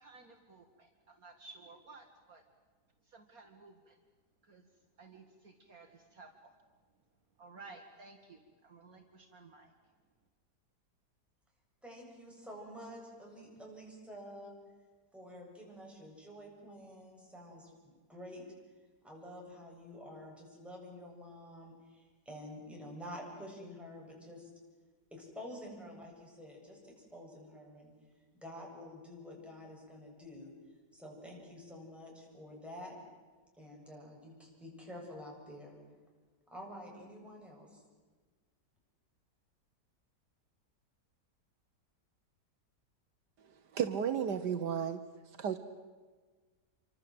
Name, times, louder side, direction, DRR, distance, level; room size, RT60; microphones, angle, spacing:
voice 1, 0.0-2.4 3.0-4.0 4.4-4.6 5.0-6.5 7.4-9.7, right 3 dB, 55° right, 4 dB, 2.3 m, -55 dB
voice 2, 11.8-14.6 15.1-17.8 18.1-18.4 19.0-24.5 25.1-27.9 28.4-30.5 30.9-33.0 33.6-35.8 36.5-37.8, left 1 dB, ahead, -2 dB, 7.7 m, -49 dB
voice 3, 43.7-45.0 45.4-45.6, right 8 dB, 75° right, 9 dB, 1.6 m, -33 dB
27.5 x 25.0 x 7.9 m, 1.4 s
omnidirectional pair, 1.8 m